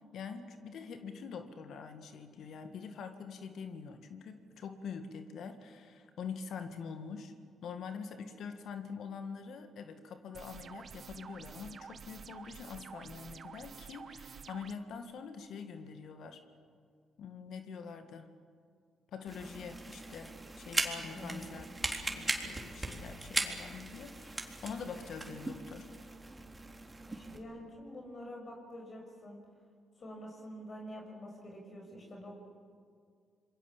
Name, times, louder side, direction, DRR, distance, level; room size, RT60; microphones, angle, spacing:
voice 1, 0.1-7.3 7.6-16.4 17.2-18.3 19.1-21.7 22.0-25.9, left 6 dB, 70° left, 8 dB, 1.9 m, -45 dB
sound 1, 10.3-14.7, right 6 dB, 55° right, 1.2 m, -49 dB
sound 2, 19.3-27.4, right 2 dB, 20° right, 3.6 m, -39 dB
voice 2, 21.1-21.4 27.1-29.4 30.0-32.5, equal, 45° left, 1 dB, 6.3 m, -47 dB
26.5 x 22.5 x 7.3 m, 2.2 s
supercardioid pair, 55°, 0 cm